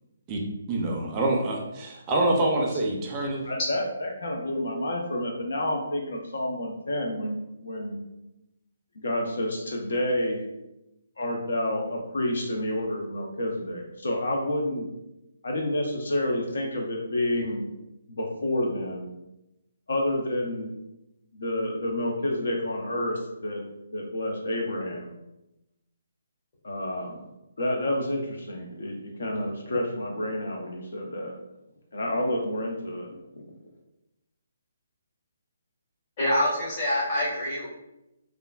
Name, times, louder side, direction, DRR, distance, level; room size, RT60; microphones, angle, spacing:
voice 1, 0.3-3.5, right 2 dB, 20° right, -1 dB, 0.4 m, -26 dB
voice 2, 3.5-8.0 9.0-10.4 11.2-14.9 15.4-17.6 18.1-19.1 19.9-20.7 21.3-23.6 23.9-25.2 26.6-27.2 27.6-31.3 31.9-33.1, left 1 dB, 75° left, 1 dB, 0.5 m, -29 dB
voice 3, 36.2-37.7, left 1 dB, 40° left, -6 dB, 1.2 m, -25 dB
3.1 x 2.4 x 2.2 m, 0.91 s
hypercardioid pair, 155°, 0 cm